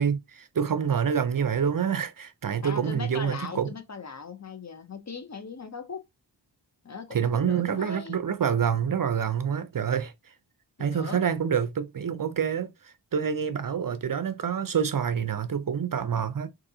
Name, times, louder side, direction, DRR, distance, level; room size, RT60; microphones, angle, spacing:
voice 1, 0.0-3.7 7.1-10.1 10.8-16.5, right 7 dB, 50° right, 0.5 m, -27 dB
voice 2, 2.6-6.0 6.8-8.2 10.8-11.2, left 5 dB, 40° left, 0.6 m, -39 dB
4.0 x 2.7 x 2.7 m
wide cardioid pair, 50°, 45 cm